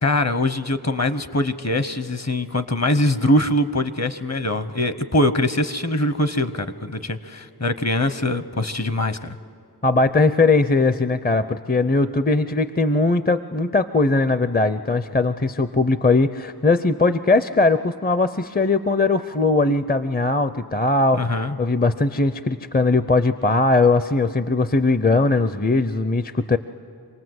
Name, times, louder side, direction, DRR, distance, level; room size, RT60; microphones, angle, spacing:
voice 1, 0.0-9.4 21.2-21.6, left 1 dB, 40° left, 12 dB, 1.0 m, -22 dB
voice 2, 9.8-21.2 21.6-26.6, left 3 dB, 25° left, 12 dB, 0.6 m, -19 dB
26.5 x 19.0 x 7.9 m, 2.5 s
wide cardioid pair, 55°, 39 cm